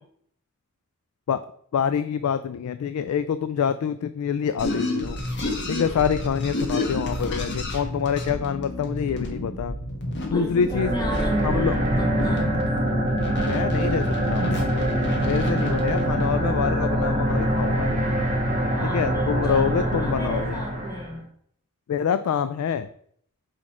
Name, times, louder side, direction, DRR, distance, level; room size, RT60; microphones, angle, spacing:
voice 1, 1.7-5.2 5.7-9.8 10.3-10.9 11.4-11.8 12.9-13.0 13.4-14.6 15.2-18.0 18.8-20.6 21.9-22.9, left 7 dB, 90° left, 12 dB, 0.3 m, -26 dB
sound 1, 4.6-16.3, left 1 dB, 55° left, 1.4 m, -30 dB
voice 2, 10.3-12.5 18.7-21.2, equal, 20° left, 0 dB, 1.4 m, -34 dB
sound 2, 10.7-21.1, right 1 dB, 40° right, 1.5 m, -24 dB
6.3 x 4.9 x 4.3 m, 0.66 s
head